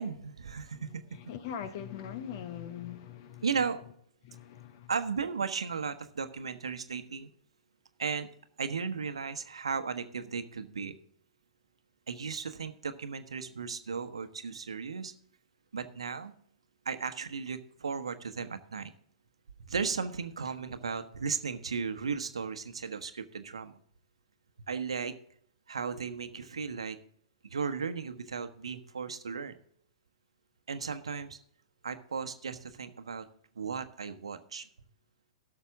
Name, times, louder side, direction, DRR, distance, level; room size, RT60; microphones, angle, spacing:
voice 1, 0.0-1.2 3.4-3.8 4.9-7.3 8.0-8.3 8.6-11.0 12.1-15.1 15.7-16.3 16.8-18.9 19.7-23.8 24.7-25.1 25.7-27.0 27.4-29.5 30.7-31.4 31.8-33.3 33.6-34.7, right 5 dB, 70° right, 1.0 m, -35 dB
voice 2, 0.7-3.5 4.2-4.9, left 9 dB, 45° left, 1.0 m, -42 dB
16.5 x 6.6 x 3.6 m
figure-of-eight pair, 105°, 3 cm